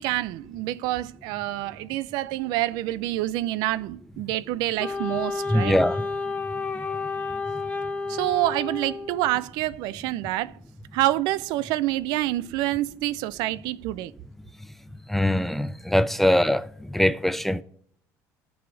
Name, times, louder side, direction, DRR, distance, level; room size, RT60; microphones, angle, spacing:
voice 1, 0.0-5.8 8.1-10.5 10.9-14.1, right 16 dB, 75° right, 0.4 m, -27 dB
Wind instrument woodwind instrument, 4.8-9.4, left 4 dB, 20° left, 0.9 m, -31 dB
voice 2, 5.5-6.0 15.1-17.6, left 1 dB, 5° left, 0.4 m, -22 dB
13.0 x 4.9 x 3.8 m
supercardioid pair, 95°, 7 cm